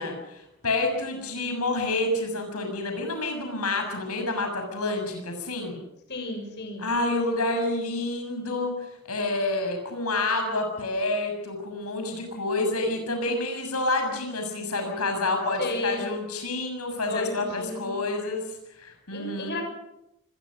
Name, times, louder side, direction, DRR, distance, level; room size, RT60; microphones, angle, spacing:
voice 1, 0.0-5.8 6.8-19.6, left 2 dB, 85° left, 4 dB, 6.8 m, -28 dB
voice 2, 6.1-6.9 15.6-16.0 17.1-17.9 19.1-19.6, left 2 dB, 50° left, 4 dB, 6.8 m, -32 dB
26.5 x 22.0 x 6.5 m, 0.87 s
head